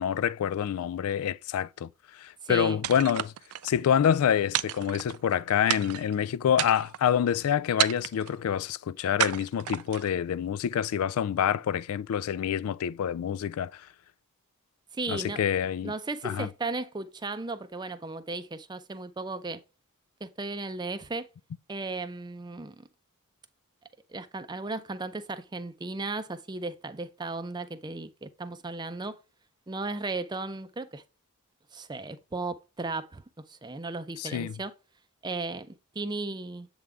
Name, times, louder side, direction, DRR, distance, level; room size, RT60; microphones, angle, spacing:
voice 1, 0.0-3.3 3.6-13.9 15.1-15.9 16.2-16.5 34.2-34.6, left 8 dB, 80° left, 0.3 m, -27 dB
voice 2, 2.4-2.8 14.9-15.4 15.8-19.6 20.2-21.3 21.7-22.9 24.1-29.2 29.7-31.0 31.7-33.2 33.5-34.7 35.2-36.7, right 3 dB, 20° right, 0.5 m, -35 dB
sound 1, 2.8-3.7 4.5-5.3 5.7-6.1 6.5-7.1 7.8-8.3 9.2-10.1, right 13 dB, 85° right, 0.4 m, -31 dB
7.8 x 3.6 x 3.3 m
head